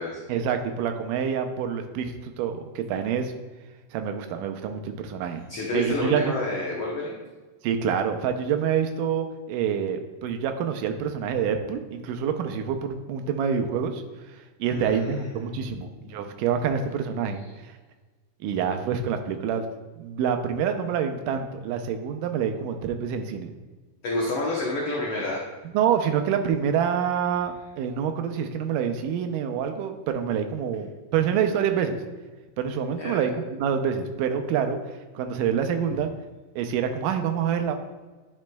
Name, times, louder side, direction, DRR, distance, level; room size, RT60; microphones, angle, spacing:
voice 1, 0.3-3.3 3.9-5.5 5.7-6.4 7.6-14.0 14.6-17.4 18.4-19.7 20.0-23.5 25.7-32.0 32.6-34.8 35.2-36.1 36.6-37.8, right 7 dB, 80° right, 6 dB, 2.2 m, -27 dB
voice 2, 5.5-7.2 14.6-16.3 24.0-25.4 33.0-33.2, left 2 dB, 65° left, -3 dB, 1.5 m, -30 dB
10.5 x 6.1 x 2.2 m, 1.3 s
omnidirectional pair, 3.8 m